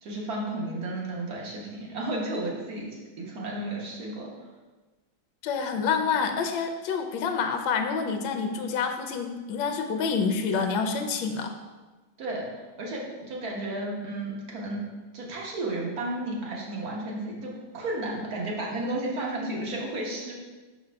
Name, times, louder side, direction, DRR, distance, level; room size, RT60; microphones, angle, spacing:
voice 1, 0.0-4.3 12.2-14.8 15.1-20.3, right 1 dB, 50° right, -2 dB, 1.4 m, -33 dB
voice 2, 5.4-11.5, left 5 dB, 75° left, 5 dB, 1.3 m, -27 dB
5.9 x 5.1 x 3.4 m, 1.2 s
omnidirectional pair, 2.3 m